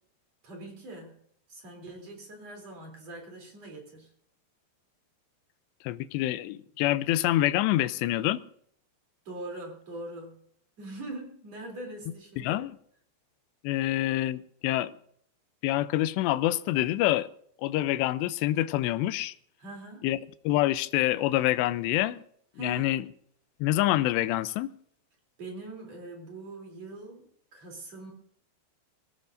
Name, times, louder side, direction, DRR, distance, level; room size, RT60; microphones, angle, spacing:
voice 1, 0.4-1.2 1.5-4.1 9.3-10.4 10.8-12.7 13.8-13.9 19.6-20.1 22.5-23.1 25.4-28.1, right 2 dB, 40° right, 4.0 m, -42 dB
voice 2, 5.8-8.4 12.4-12.7 13.6-14.9 15.6-17.3 17.6-19.4 20.0-20.2 20.4-22.2 22.6-23.0 23.6-24.7, left 15 dB, 80° left, 2.8 m, -26 dB
22.5 x 16.0 x 2.6 m
omnidirectional pair, 5.1 m